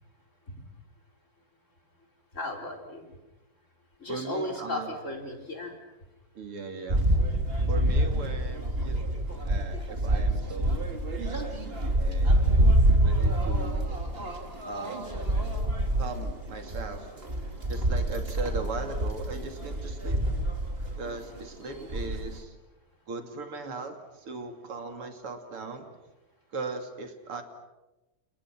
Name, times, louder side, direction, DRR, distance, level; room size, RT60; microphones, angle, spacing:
voice 1, 2.3-3.1 4.0-5.8 8.6-8.7, left 2 dB, 35° left, 2 dB, 4.7 m, -35 dB
voice 2, 4.1-4.9 6.4-7.0 7.7-10.9 11.2-12.4 13.0-14.0 14.6-15.1 16.0-17.1 17.7-20.2 21.0-22.6 23.1-25.9 26.5-27.4, right 4 dB, 80° right, 5 dB, 3.6 m, -39 dB
sound 1, 6.9-21.1 21.4-21.5 21.7-22.3, right 1 dB, 25° right, 2.9 m, -26 dB
30.0 x 29.0 x 6.2 m, 1.0 s
omnidirectional pair, 2.4 m